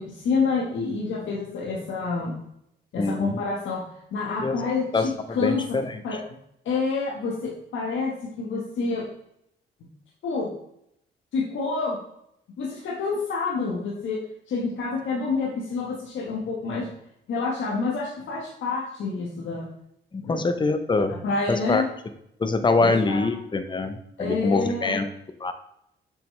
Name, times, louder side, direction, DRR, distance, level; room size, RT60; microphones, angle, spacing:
voice 1, 0.0-2.3 2.9-3.8 4.1-5.6 6.0-6.2 6.6-9.1 10.2-10.5 11.3-12.0 12.6-14.2 14.5-16.9 17.3-19.7 20.2-20.4 21.2-21.8 22.8-23.3 24.2-25.0, left 4 dB, 70° left, -3 dB, 1.5 m, -28 dB
voice 2, 3.0-3.4 4.4-4.7 4.9-6.2 20.1-21.1 21.5-21.8 22.4-25.1 25.4-25.5, left 3 dB, 25° left, 9 dB, 0.7 m, -24 dB
6.8 x 6.1 x 3.3 m, 0.75 s
cardioid pair, 90°, 20 cm